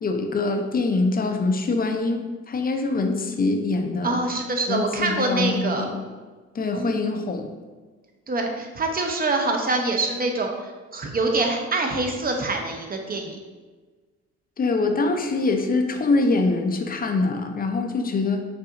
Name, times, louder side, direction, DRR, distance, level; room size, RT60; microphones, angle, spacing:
voice 1, 0.0-2.2 2.5-4.2 4.7-6.0 6.5-7.5 14.6-18.4, left 3 dB, 30° left, 5 dB, 0.5 m, -24 dB
voice 2, 4.0-5.8 6.8-7.0 8.3-13.4, right 2 dB, 30° right, 2 dB, 0.7 m, -25 dB
5.7 x 2.6 x 2.5 m, 1.4 s
cardioid pair, 90°, 30 cm